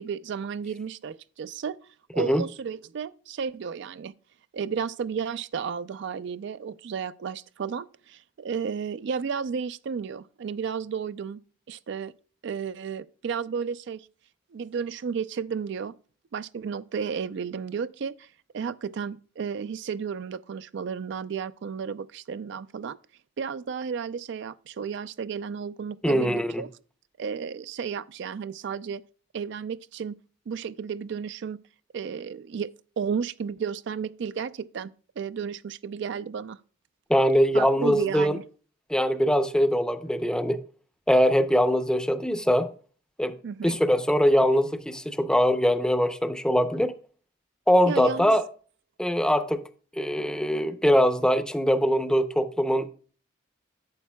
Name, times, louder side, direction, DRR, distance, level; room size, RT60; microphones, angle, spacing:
voice 1, 0.0-1.8 2.1-4.1 4.5-11.4 11.7-12.1 12.4-14.1 14.5-15.9 16.3-18.3 18.5-23.0 23.4-26.7 27.2-29.0 29.3-30.1 30.5-31.6 31.9-36.6 37.5-38.4 43.4-43.8 47.9-48.4, right 6 dB, 60° right, 0.4 m, -33 dB
voice 2, 26.0-26.6 37.1-38.4 38.9-40.6 41.1-42.7 43.2-43.4 43.6-47.0 47.7-48.4 49.0-49.7 50.0-52.9, equal, 5° left, 0.5 m, -22 dB
11.5 x 8.3 x 2.2 m
head